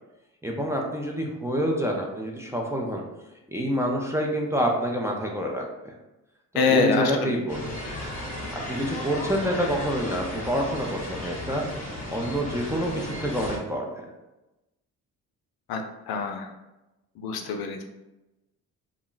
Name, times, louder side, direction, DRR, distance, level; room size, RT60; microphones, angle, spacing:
voice 1, 0.4-3.0 3.5-5.9 6.5-7.7 8.7-11.7 12.1-14.1, equal, 10° right, -1 dB, 0.4 m, -27 dB
voice 2, 6.6-7.4 15.7-16.5 17.2-17.8, left 4 dB, 75° left, 4 dB, 0.5 m, -24 dB
sound 1, 7.5-13.6, left 1 dB, 20° left, 1.1 m, -35 dB
2.3 x 2.0 x 3.8 m, 1.0 s
cardioid pair, 85°, 37 cm